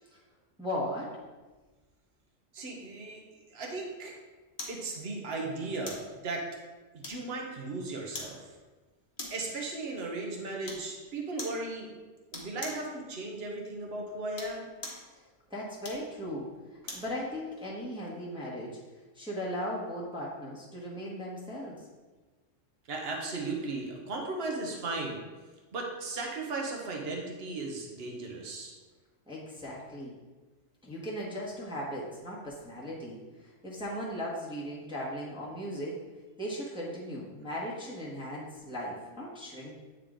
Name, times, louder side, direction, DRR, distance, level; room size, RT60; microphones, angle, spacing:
voice 1, 0.6-1.1 15.1-15.2 15.5-16.5 16.9-18.8 19.1-21.9 29.3-30.1 30.8-36.0 36.4-39.7, equal, 5° right, -6 dB, 1.2 m, -37 dB
voice 2, 2.5-4.1 4.7-6.5 6.9-8.6 9.3-11.9 12.3-14.7 22.9-25.2 25.7-28.7, right 3 dB, 55° right, 0 dB, 1.2 m, -36 dB
sound 1, 4.6-4.8 5.9-6.1 7.0-7.5 8.1-8.4 9.2-9.5 10.6-10.9 11.4-11.6 12.3-12.9 14.2-15.1 15.8-17.1 17.6-17.7, left 2 dB, 30° left, 1.1 m, -42 dB
8.5 x 3.7 x 3.7 m, 1.3 s
omnidirectional pair, 1.3 m